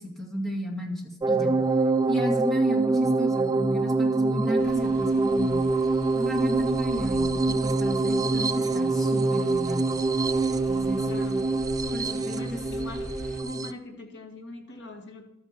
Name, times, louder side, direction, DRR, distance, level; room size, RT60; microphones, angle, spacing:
voice 1, 0.0-1.6 2.1-5.6 6.1-9.9 10.7-11.1 11.9-12.6, equal, ahead, -2 dB, 2.3 m, -33 dB
sound 1, 1.2-13.7, right 3 dB, 15° right, 0.4 m, -25 dB
sound 2, 4.6-13.4, equal, 85° left, 2.7 m, -45 dB
voice 2, 11.1-11.5 12.4-13.1 13.4-15.2, left 2 dB, 55° left, 2 dB, 2.1 m, -41 dB
12.5 x 9.3 x 4.4 m, 0.83 s
head